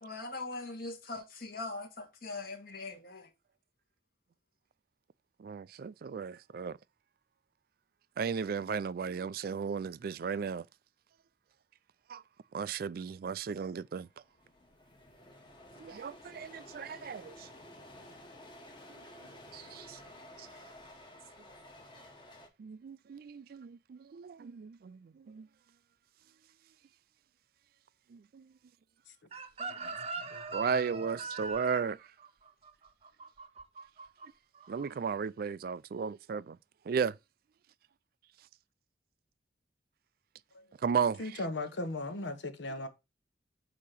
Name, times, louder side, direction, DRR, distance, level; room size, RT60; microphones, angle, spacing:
voice 1, 0.0-3.3, left 3 dB, 50° left, 1.8 m, -41 dB
voice 2, 5.4-6.8 8.2-10.6 12.1-12.2 12.5-14.1 15.8-17.5 19.5-20.0 20.4-20.5 22.6-25.5 28.1-28.5 29.6-29.9 30.5-32.0 34.7-36.6 36.9-37.2 40.8-41.2, right 6 dB, 55° right, 0.3 m, -35 dB
sound 1, 13.7-13.8 14.0-22.5, left 1 dB, 25° left, 1.3 m, -53 dB
Chicken rooster, 29.3-34.3 34.5-34.9, right 4 dB, 35° right, 0.7 m, -41 dB
voice 3, 29.7-30.8 40.5-40.6 41.2-42.9, left 2 dB, 80° left, 1.1 m, -39 dB
8.3 x 2.9 x 5.7 m
head